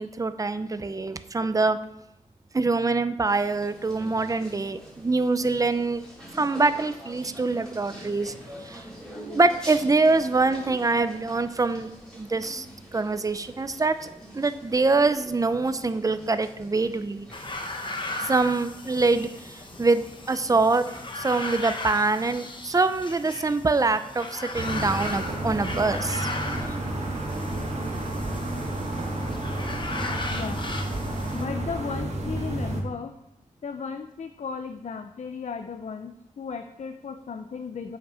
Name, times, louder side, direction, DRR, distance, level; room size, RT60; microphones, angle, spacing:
voice 1, 0.0-1.8 2.5-6.0 6.3-8.3 8.6-8.8 9.3-12.7 12.9-14.1 14.3-17.3 18.2-20.9 21.2-26.3, right 3 dB, 25° right, 11 dB, 0.5 m, -24 dB
sound 1, 3.3-21.5, equal, 5° left, 3.8 m, -46 dB
sound 2, 17.3-31.4, left 2 dB, 35° left, 1.0 m, -37 dB
sound 3, 24.5-32.8, right 1 dB, 55° right, 1.8 m, -31 dB
voice 2, 30.3-33.2 33.6-38.0, left 5 dB, 55° left, 8 dB, 0.5 m, -36 dB
7.7 x 5.9 x 5.5 m, 0.83 s
wide cardioid pair, 100°, 14 cm